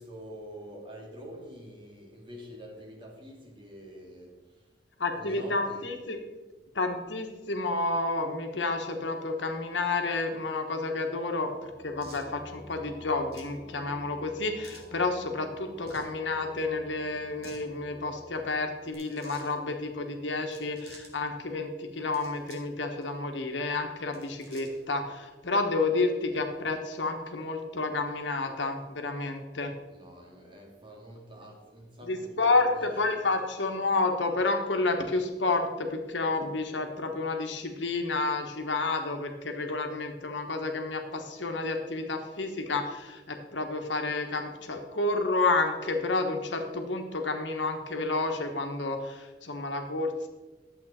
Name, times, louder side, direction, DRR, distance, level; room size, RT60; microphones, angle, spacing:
voice 1, 0.0-4.7 5.1-5.9 29.9-33.2, equal, 30° right, -1 dB, 2.3 m, -47 dB
voice 2, 5.0-6.2 6.7-11.5 11.8-29.7 32.1-50.3, left 3 dB, 85° left, 4 dB, 1.3 m, -30 dB
sound 1, 11.4-18.9, equal, 20° left, 3.4 m, -50 dB
sound 2, 12.0-12.3 13.3-13.6 14.6-14.9 15.8-16.1 17.2-17.6 18.8-19.5 20.4-21.1 21.9-22.7 23.0-23.1 24.0-24.9, right 2 dB, 60° right, 2.2 m, -52 dB
11.5 x 7.7 x 4.3 m, 1.2 s
head